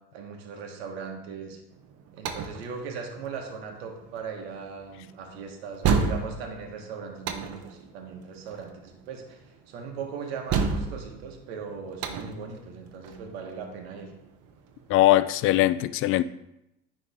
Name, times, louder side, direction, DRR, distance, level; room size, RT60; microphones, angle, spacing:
voice 1, 0.1-1.6 2.1-14.1, right 5 dB, 80° right, 1.4 m, -39 dB
sound 1, 1.7-14.9, right 5 dB, 55° right, 1.0 m, -32 dB
voice 2, 14.9-16.2, left 15 dB, 45° left, 0.4 m, -21 dB
9.7 x 3.5 x 3.6 m
hypercardioid pair, 90°, 31 cm